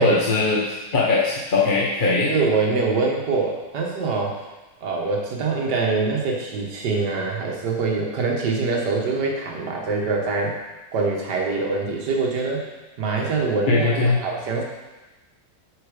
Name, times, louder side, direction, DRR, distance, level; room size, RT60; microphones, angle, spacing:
voice 1, 0.0-2.3 13.7-14.2, left 3 dB, 35° left, -4 dB, 1.1 m, -20 dB
voice 2, 2.3-4.4 4.8-10.6 10.9-12.7 13.0-14.6, right 4 dB, 85° right, 0 dB, 2.0 m, -24 dB
8.2 x 6.0 x 5.1 m, 1.1 s
omnidirectional pair, 1.8 m